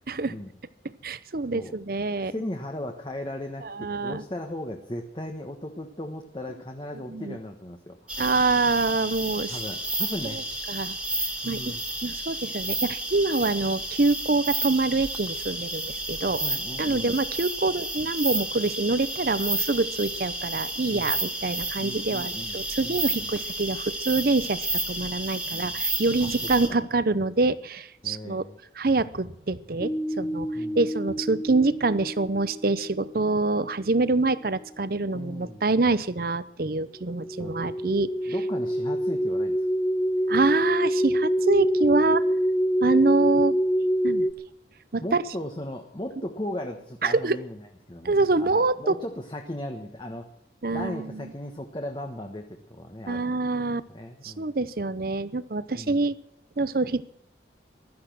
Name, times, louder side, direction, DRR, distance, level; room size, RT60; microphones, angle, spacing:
voice 1, 1.0-2.3 3.6-4.2 7.1-7.4 8.2-9.6 10.3-10.4 10.7-11.0 11.5-11.7 12.0-16.4 16.8-28.5 28.8-30.5 30.8-38.3 40.3-42.2 42.8-43.6 44.0-44.3 44.9-45.2 47.0-47.4 48.0-48.8 50.6-51.3 53.1-53.8 54.2-56.2 56.6-57.1, right 3 dB, 55° right, 16 dB, 0.7 m, -25 dB
voice 2, 2.3-8.2 9.5-10.4 11.4-11.8 16.4-17.1 20.8-21.2 21.8-23.4 25.5-25.8 26.2-26.3 26.6-26.8 28.0-28.6 30.5-30.8 35.1-35.6 37.4-37.7 38.2-39.6 45.0-47.6 47.9-50.3 50.7-53.5 53.9-54.5 55.7-56.0, left 1 dB, 25° left, 4 dB, 1.3 m, -37 dB
sound 1, 8.1-26.7, right 2 dB, 5° right, 2.2 m, -31 dB
sound 2, 29.8-34.0 37.0-44.3, equal, 10° left, 0.6 m, -26 dB
16.0 x 12.5 x 6.2 m, 0.77 s
head